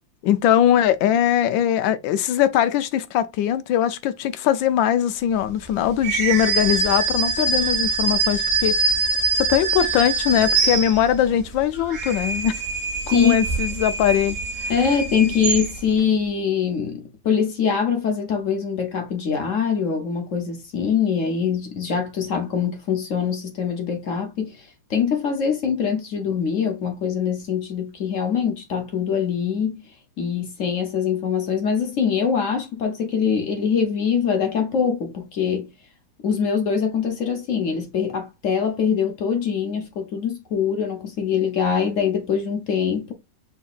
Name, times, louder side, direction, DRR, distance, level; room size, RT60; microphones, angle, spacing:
voice 1, 0.2-8.7 9.4-12.6 13.1-14.7, left 10 dB, 90° left, 1.3 m, -21 dB
sound 1, 6.0-11.3 11.8-16.0, right 4 dB, 50° right, 1.3 m, -24 dB
voice 2, 14.7-24.6 24.9-29.8 30.2-35.7 36.2-43.1, left 7 dB, 55° left, 1.0 m, -23 dB
6.0 x 2.8 x 2.3 m
omnidirectional pair, 2.0 m